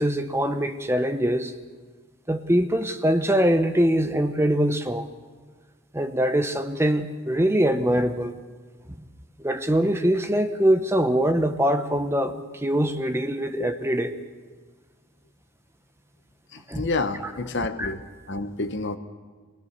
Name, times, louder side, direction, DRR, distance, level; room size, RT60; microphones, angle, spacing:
voice 1, 0.0-1.5 2.3-5.1 5.9-8.3 9.0-9.1 9.4-14.2 16.7-16.9 17.8-17.9, equal, 10° right, 8 dB, 0.9 m, -23 dB
voice 2, 16.5-19.0, left 3 dB, 55° left, 9 dB, 1.1 m, -29 dB
23.0 x 17.5 x 6.7 m, 1.5 s
head